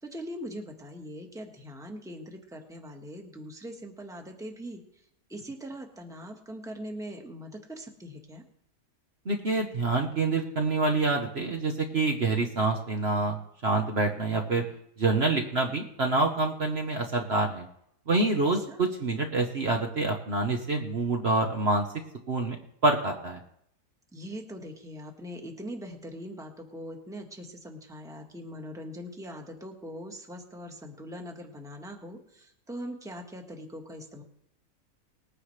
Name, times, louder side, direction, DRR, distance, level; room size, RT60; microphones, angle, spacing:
voice 1, 0.0-8.4 18.4-18.9 24.1-34.2, equal, ahead, 3 dB, 1.4 m, -41 dB
voice 2, 9.2-13.4 13.6-14.6 15.0-17.7 18.1-21.9 22.3-22.6 22.8-23.4, right 3 dB, 45° right, 3 dB, 1.2 m, -26 dB
20.0 x 9.7 x 3.3 m, 0.75 s
omnidirectional pair, 1.6 m